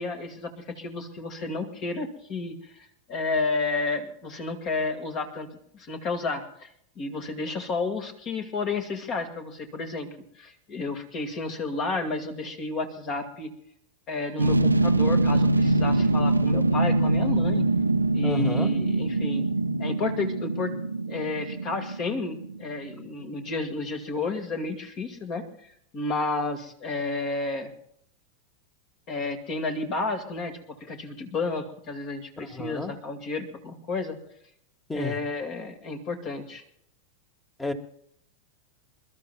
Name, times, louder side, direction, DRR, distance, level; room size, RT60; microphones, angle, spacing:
voice 1, 0.0-5.5 5.7-6.7 7.0-10.1 10.3-13.5 14.1-17.7 18.1-19.5 19.8-20.7 21.1-27.7 29.1-34.2 34.9-36.6, left 3 dB, 35° left, 6 dB, 2.0 m, -31 dB
sound 1, 14.4-22.9 23.2-23.3, right 2 dB, 85° right, 0.6 m, -24 dB
voice 2, 18.2-18.7 32.4-32.9 34.9-35.2 37.6-37.7, left 3 dB, 10° left, 9 dB, 1.6 m, -31 dB
28.0 x 13.0 x 2.3 m, 0.69 s
figure-of-eight pair, 90°, 0 cm